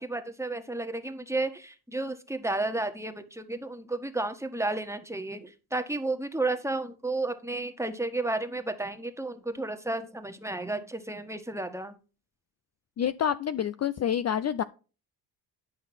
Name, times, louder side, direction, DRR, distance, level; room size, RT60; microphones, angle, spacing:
voice 1, 0.0-11.9, right 2 dB, 5° right, 6 dB, 1.6 m, -32 dB
voice 2, 13.0-14.6, left 9 dB, 35° left, 13 dB, 0.5 m, -28 dB
11.0 x 5.7 x 4.3 m, 0.35 s
hypercardioid pair, 50°, 46 cm